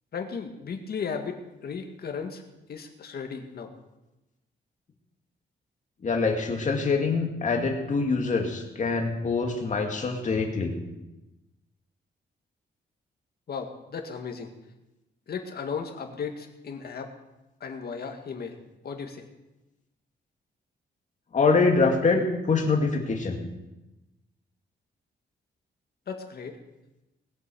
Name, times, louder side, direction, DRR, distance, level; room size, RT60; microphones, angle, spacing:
voice 1, 0.1-2.4 2.7-3.7 13.5-14.5 15.3-17.1 17.6-18.6 18.8-19.3 26.1-26.6, left 6 dB, 60° left, 4 dB, 1.9 m, -35 dB
voice 2, 6.0-10.7 21.3-23.4, left 4 dB, 45° left, 3 dB, 2.2 m, -24 dB
20.0 x 8.2 x 6.9 m, 1.0 s
wide cardioid pair, 145°, 18 cm